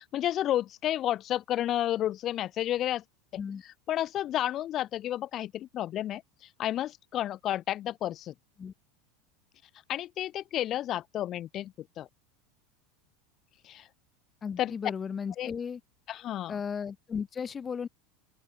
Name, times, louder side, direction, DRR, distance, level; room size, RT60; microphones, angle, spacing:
voice 1, 0.0-3.0 3.3-3.4 3.9-6.2 6.6-8.3 9.9-12.1 13.6-13.9 14.6-14.7 15.4-15.5 16.1-16.6, left 12 dB, 45° left, 1.3 m, -31 dB
voice 2, 14.4-15.8 16.5-17.9, left 6 dB, 25° left, 3.8 m, -35 dB
open air
hypercardioid pair, 90°, 0 cm